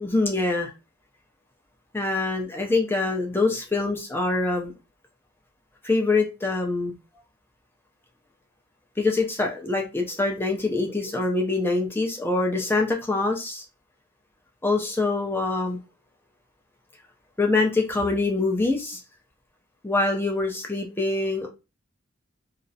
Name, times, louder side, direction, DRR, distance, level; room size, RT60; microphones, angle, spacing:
voice 1, 0.0-0.7 1.9-4.7 5.8-7.0 9.0-13.6 14.6-15.8 17.4-19.0 19.8-21.5, left 3 dB, 10° left, 0.4 m, -24 dB
2.4 x 2.0 x 2.6 m
head